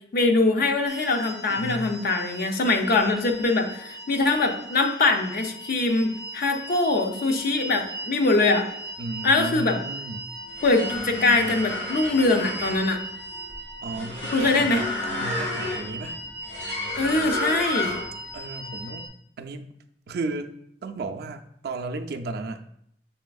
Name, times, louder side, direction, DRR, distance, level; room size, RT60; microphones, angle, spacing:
voice 1, 0.1-8.7 9.2-9.8 10.6-13.0 14.3-14.8 17.0-18.0, left 3 dB, 55° left, 5 dB, 0.5 m, -23 dB
sound 1, 0.9-19.1, right 1 dB, 25° left, 0.7 m, -39 dB
voice 2, 1.5-1.9 9.0-10.3 13.8-16.2 18.3-19.1 19.4-19.7 20.1-20.6 20.8-22.6, right 2 dB, 60° right, 6 dB, 0.4 m, -34 dB
sound 2, 10.4-18.2, left 2 dB, 90° left, 1.8 m, -31 dB
6.8 x 3.3 x 2.3 m, 0.73 s
head